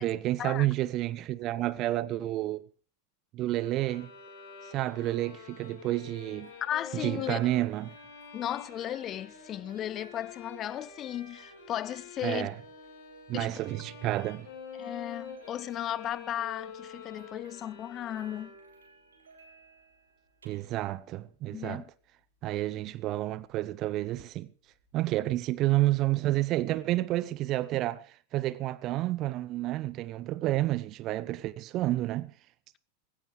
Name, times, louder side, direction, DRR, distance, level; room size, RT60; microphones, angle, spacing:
voice 1, 0.0-2.6 3.3-4.1 4.7-6.5 6.9-7.9 12.2-12.6 13.3-14.5 20.4-21.8 22.4-24.5 24.9-32.3, right 16 dB, 35° right, 0.7 m, -30 dB
sound 1, 3.4-7.4, left 3 dB, 90° left, 6.7 m, -57 dB
sound 2, 3.8-18.9, left 5 dB, 55° left, 4.6 m, -48 dB
sound 3, 5.8-24.9, right 5 dB, 70° right, 3.8 m, -57 dB
voice 2, 6.6-7.4 8.3-12.5 13.3-13.6 14.8-18.5 21.5-21.8, left 11 dB, 30° left, 0.6 m, -35 dB
18.5 x 16.5 x 3.2 m
figure-of-eight pair, 90°, 0 cm